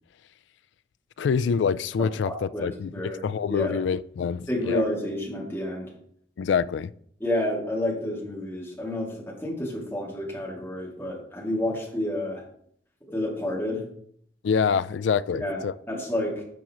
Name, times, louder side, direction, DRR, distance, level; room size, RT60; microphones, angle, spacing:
voice 1, 1.2-4.8 6.4-6.9 14.4-15.7, left 6 dB, 85° left, 0.3 m, -26 dB
voice 2, 2.2-3.8 4.5-5.9 7.2-12.4 13.1-13.8 15.3-15.6 15.9-16.3, left 1 dB, 10° left, 2.5 m, -30 dB
10.5 x 6.2 x 3.0 m
head